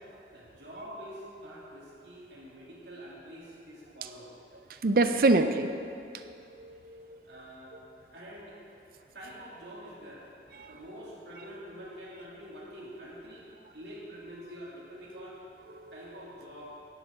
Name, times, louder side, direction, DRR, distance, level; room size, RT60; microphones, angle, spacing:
voice 1, 0.3-4.3 7.2-7.8 8.1-8.6 9.1-10.3 10.7-13.5 13.7-15.4 15.9-16.8, equal, 75° right, -6 dB, 2.7 m, -46 dB
voice 2, 4.8-7.2 15.8-15.9, right 2 dB, 50° right, 8 dB, 0.5 m, -27 dB
10.5 x 10.5 x 3.7 m, 2.6 s
head